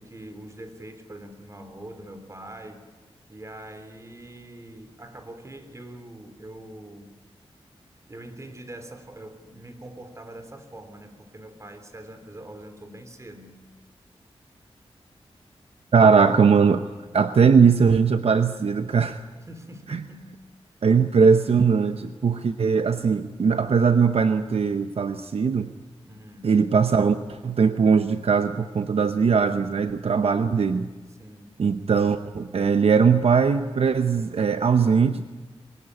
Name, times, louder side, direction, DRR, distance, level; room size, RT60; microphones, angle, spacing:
voice 1, 0.0-2.8 3.3-7.2 8.1-13.6 19.5-20.3 26.0-26.5 31.1-31.5, right 1 dB, 30° right, 8 dB, 3.2 m, -43 dB
voice 2, 15.9-16.8 17.1-19.2 19.9-20.0 20.8-25.7 26.4-30.9 31.6-35.2, right 5 dB, 70° right, 9 dB, 0.9 m, -20 dB
22.5 x 18.5 x 9.7 m, 1.3 s
wide cardioid pair, 90°, 11 cm